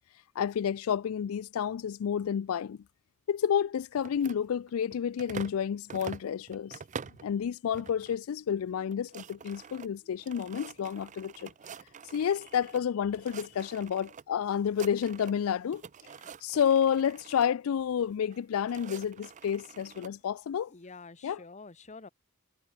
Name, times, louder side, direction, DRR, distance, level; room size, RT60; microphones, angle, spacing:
voice 1, 0.4-2.8 3.3-6.8 7.2-11.5 12.0-15.8 16.4-20.7 21.2-21.4, left 8 dB, 85° left, 0.4 m, -30 dB
sound 1, 4.0-5.6 5.9-7.3 7.7-8.2 8.5-8.6 8.8-12.8 13.1-14.2 14.5-15.5 15.7-17.5 18.3-20.1, right 6 dB, 35° right, 0.5 m, -46 dB
voice 2, 20.7-22.1, left 3 dB, 35° left, 1.2 m, -48 dB
head